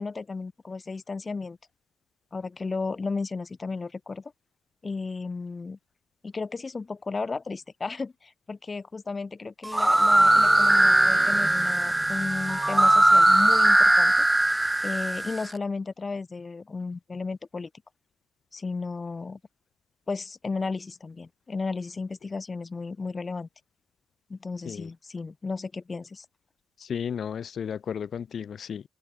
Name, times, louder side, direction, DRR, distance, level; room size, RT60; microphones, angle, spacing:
voice 1, 0.0-1.6 2.3-4.3 4.8-5.8 6.2-14.3 14.8-17.7 18.5-19.4 20.1-23.5 24.3-26.3, left 4 dB, 30° left, 1.2 m, -34 dB
sound 1, 9.6-15.5, right 1 dB, 10° right, 1.3 m, -20 dB
voice 2, 26.8-28.9, left 7 dB, 55° left, 1.6 m, -33 dB
cardioid pair, 90°, 0 cm